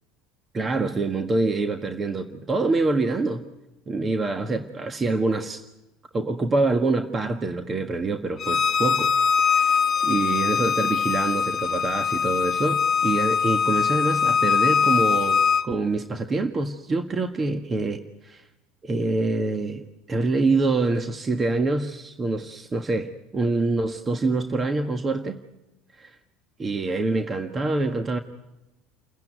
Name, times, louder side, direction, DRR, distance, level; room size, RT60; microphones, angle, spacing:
voice 1, 0.5-3.4 3.9-5.6 6.1-9.1 9.4-9.8 10.0-18.4 18.8-25.4 26.0-26.2 26.6-28.2, right 3 dB, 30° right, 6 dB, 1.6 m, -25 dB
Bowed string instrument, 8.4-15.6, left 6 dB, 35° left, 1.2 m, -22 dB
29.5 x 15.5 x 9.3 m, 0.99 s
supercardioid pair, 90°, 0 cm